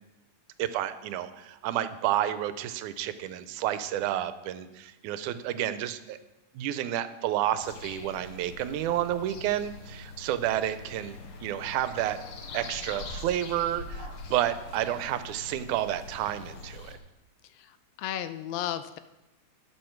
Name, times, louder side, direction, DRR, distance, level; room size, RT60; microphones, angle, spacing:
voice 1, 0.6-6.2 6.5-12.2 12.5-17.0, right 12 dB, 85° right, 12 dB, 2.1 m, -30 dB
sound 1, 7.6-17.0, left 3 dB, 60° left, 1.7 m, -43 dB
voice 2, 17.5-19.0, left 11 dB, 80° left, 11 dB, 1.6 m, -34 dB
12.0 x 8.4 x 4.5 m, 1.0 s
omnidirectional pair, 3.4 m